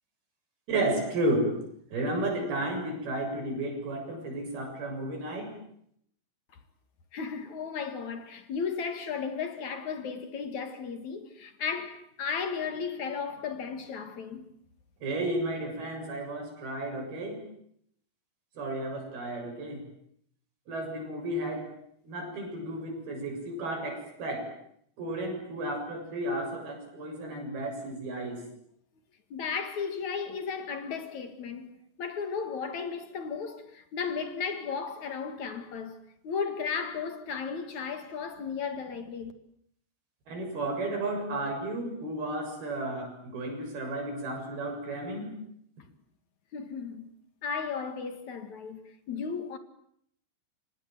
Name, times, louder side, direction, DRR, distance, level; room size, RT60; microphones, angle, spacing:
voice 1, 0.7-1.6 1.9-5.5 15.0-17.4 18.6-19.8 20.7-21.7 22.0-24.5 25.0-28.4 40.3-45.3, right 1 dB, 85° right, 9.2 m, -33 dB
voice 2, 7.1-14.5 29.3-39.3 46.5-47.1 47.4-49.6, left 6 dB, 55° left, 3.0 m, -35 dB
30.0 x 25.5 x 7.7 m
omnidirectional pair, 4.3 m